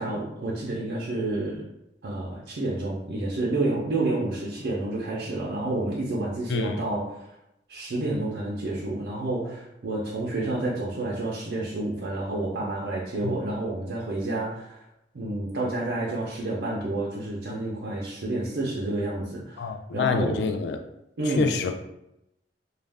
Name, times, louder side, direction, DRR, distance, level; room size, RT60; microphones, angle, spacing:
voice 1, 0.0-1.6 2.0-7.2 7.7-14.8 15.1-20.4 21.2-21.5, right 2 dB, 70° right, -5 dB, 0.5 m, -29 dB
voice 2, 6.5-6.8 13.2-13.3 19.6-20.8 21.4-21.8, left 5 dB, 75° left, 7 dB, 0.3 m, -27 dB
2.4 x 2.1 x 3.3 m, 0.85 s
head